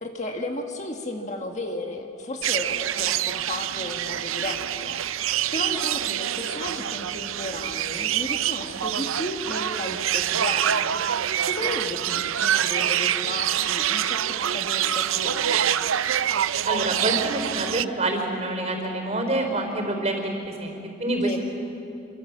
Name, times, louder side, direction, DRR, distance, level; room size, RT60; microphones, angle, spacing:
voice 1, 0.0-15.7 21.2-21.4, left 1 dB, 35° left, 3 dB, 1.7 m, -34 dB
sound 1, 2.4-17.8, right 10 dB, 85° right, 0.6 m, -26 dB
voice 2, 16.6-20.3 20.6-21.3, right 1 dB, 35° right, 3 dB, 4.5 m, -27 dB
27.5 x 25.0 x 7.5 m, 2.8 s
head